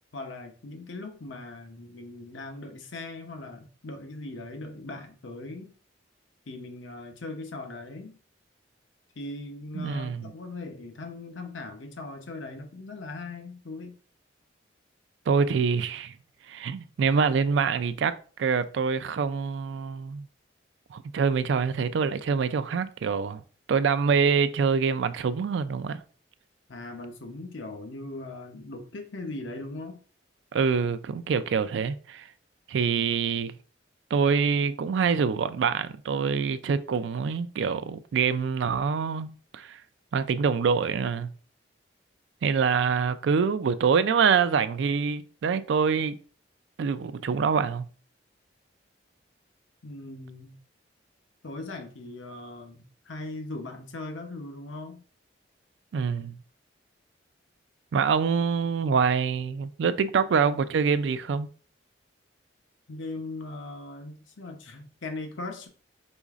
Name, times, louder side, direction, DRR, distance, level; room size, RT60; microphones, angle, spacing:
voice 1, 0.1-5.7 6.5-8.2 9.2-14.0 26.7-30.0 49.8-50.6 51.4-55.0 62.9-65.7, left 2 dB, 80° left, 0.7 m, -39 dB
voice 2, 9.7-10.3 15.3-16.1 16.5-20.2 20.9-23.4 23.7-26.0 30.5-32.3 32.7-33.5 34.1-39.8 40.1-41.3 42.4-46.2 46.8-47.9 55.9-56.4 57.9-61.5, right 6 dB, 70° right, 0.3 m, -25 dB
5.1 x 4.0 x 2.4 m
head